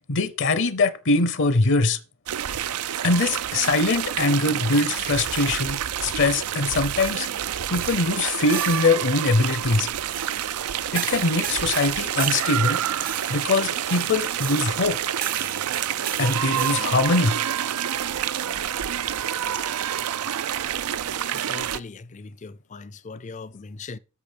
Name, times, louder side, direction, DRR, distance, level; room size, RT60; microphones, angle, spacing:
voice 1, 0.1-2.0 3.0-7.3 7.7-9.9 10.9-15.1 16.2-17.4, left 3 dB, 55° left, 0.8 m, -22 dB
sound 1, 2.3-21.8, right 10 dB, 85° right, 0.5 m, -28 dB
sound 2, 2.5-3.0 3.5-4.3 4.6-5.8 6.6-9.2 10.1-17.1, right 10 dB, 40° right, 0.6 m, -37 dB
voice 2, 21.2-24.0, left 4 dB, 35° left, 0.5 m, -40 dB
8.5 x 6.7 x 5.1 m
head